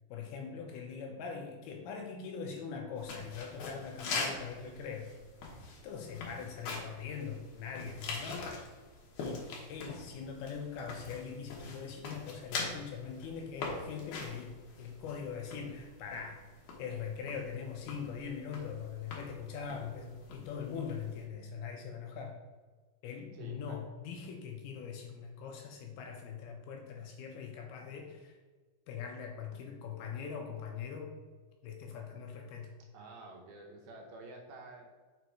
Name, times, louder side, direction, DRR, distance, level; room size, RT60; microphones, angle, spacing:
voice 1, 0.1-5.1 5.5-5.6 5.8-8.6 9.2-16.4 16.8-22.4 23.0-28.4 28.9-31.1 31.6-32.7, left 6 dB, 80° left, 2 dB, 2.4 m, -42 dB
sound 1, 3.0-21.2, left 3 dB, 65° left, 2.3 m, -43 dB
voice 2, 23.3-23.8 32.9-34.9, right 2 dB, 75° right, 1 dB, 2.5 m, -50 dB
6.9 x 4.0 x 4.6 m, 1.4 s
omnidirectional pair, 4.8 m